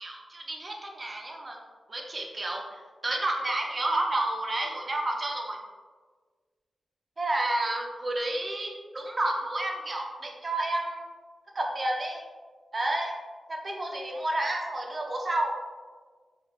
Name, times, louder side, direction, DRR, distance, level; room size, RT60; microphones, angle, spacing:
voice 1, 0.0-1.6 1.9-5.6 7.2-11.1 11.5-12.2 12.7-13.1 13.5-15.5, right 1 dB, 35° right, 0 dB, 0.5 m, -30 dB
3.2 x 3.1 x 2.3 m, 1.5 s
wide cardioid pair, 120°, 0 cm